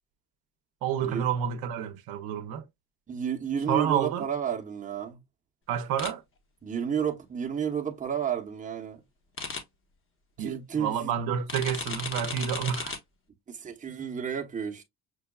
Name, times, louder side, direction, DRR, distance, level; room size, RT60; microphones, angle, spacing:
voice 1, 0.8-2.7 3.7-4.3 5.7-6.2 10.4-12.9, right 9 dB, 75° right, 0.7 m, -29 dB
voice 2, 3.1-5.2 6.6-9.0 10.4-11.1 13.5-14.8, right 7 dB, 20° right, 0.8 m, -31 dB
sound 1, 6.0-6.1 9.4-9.6 11.5-13.0, left 4 dB, 35° left, 1.0 m, -34 dB
6.1 x 2.2 x 2.2 m
cardioid pair, 110°, 37 cm